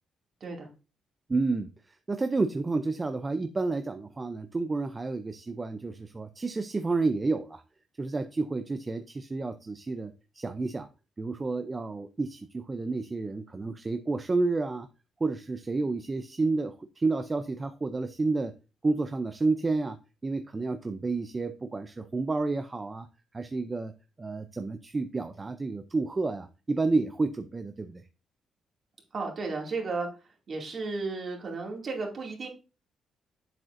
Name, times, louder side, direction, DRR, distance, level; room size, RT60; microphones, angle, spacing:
voice 1, 1.3-1.7 2.1-7.6 8.0-10.9 11.2-14.9 15.2-18.5 18.8-20.0 20.2-23.1 23.3-23.9 24.2-28.0, right 3 dB, 25° right, 9 dB, 0.4 m, -30 dB
voice 2, 29.1-32.5, right 3 dB, 45° right, 1 dB, 2.3 m, -34 dB
7.6 x 7.5 x 2.6 m, 0.31 s
cardioid pair, 120°, 0 cm